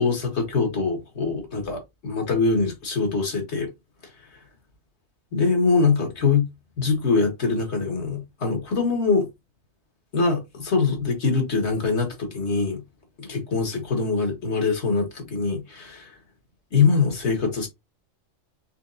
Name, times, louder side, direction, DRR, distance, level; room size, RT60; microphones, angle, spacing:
voice 1, 0.0-3.7 5.3-6.5 6.8-9.3 10.1-12.8 13.2-16.1 16.7-17.7, left 4 dB, 60° left, 1.7 m, -23 dB
4.5 x 3.5 x 2.6 m
omnidirectional pair, 1.3 m